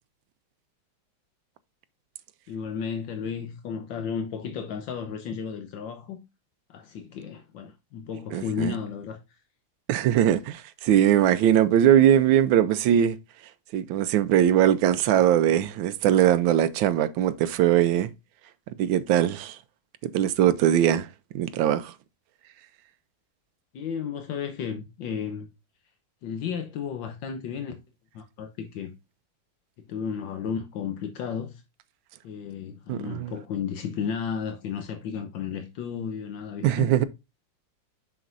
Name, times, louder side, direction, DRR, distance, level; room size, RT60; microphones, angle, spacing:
voice 1, 2.5-6.2 6.7-9.2 23.7-25.5 26.2-27.7 28.1-28.9 29.8-31.6 32.2-36.9, left 7 dB, 75° left, 1.5 m, -33 dB
voice 2, 8.3-8.8 9.9-13.2 13.7-18.1 18.8-19.6 20.1-21.1 21.3-21.9 32.9-33.3 36.6-37.0, right 11 dB, 90° right, 1.4 m, -21 dB
7.1 x 6.0 x 2.5 m
omnidirectional pair, 2.1 m